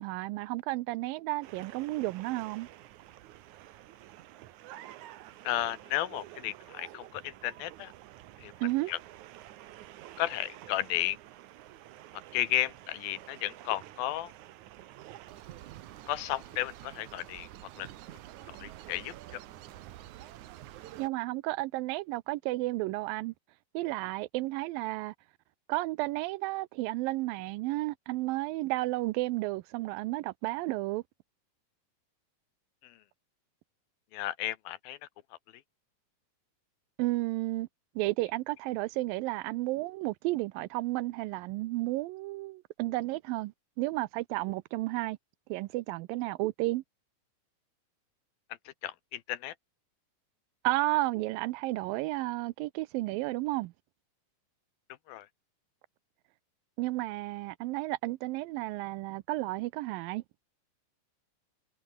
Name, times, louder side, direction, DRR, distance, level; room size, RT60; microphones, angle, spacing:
voice 1, 0.0-2.7 8.6-8.9 21.0-23.3 23.7-25.1 25.7-31.0 37.0-37.7 38.0-45.2 45.5-46.8 50.6-53.7 56.8-60.2, right 20 dB, 90° right, 2.4 m, -32 dB
sound 1, 1.4-21.1, right 14 dB, 70° right, 2.2 m, -49 dB
voice 2, 5.4-7.9 8.4-8.5 8.9-9.0 10.2-11.2 12.3-14.3 16.1-17.5 17.8-17.9 18.6-19.4 32.8-32.9 34.1-35.0 48.8-49.5 55.1-55.3, left 14 dB, 90° left, 3.1 m, -33 dB
omnidirectional pair, 4.1 m